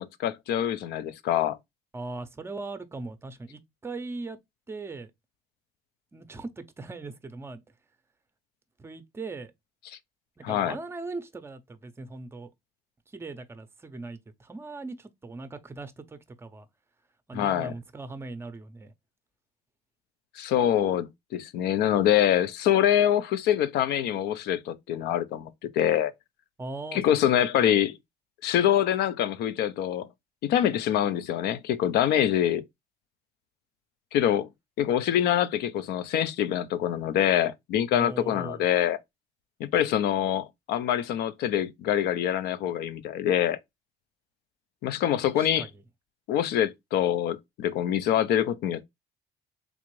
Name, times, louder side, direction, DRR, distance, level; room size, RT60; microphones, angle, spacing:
voice 1, 0.0-1.6 10.4-10.8 17.3-17.7 20.4-26.1 26.9-28.0 28.4-30.1 30.4-32.6 34.1-34.5 34.8-39.0 39.6-43.6 44.8-45.7 46.3-48.8, left 10 dB, 75° left, 0.5 m, -25 dB
voice 2, 1.9-4.4 4.7-5.1 6.1-7.6 8.8-9.5 10.4-12.5 13.1-16.7 17.3-18.9 26.6-27.0 27.6-27.8 37.9-38.6 45.4-45.8, right 3 dB, 15° right, 0.5 m, -39 dB
3.6 x 2.5 x 3.0 m
cardioid pair, 110°, 17 cm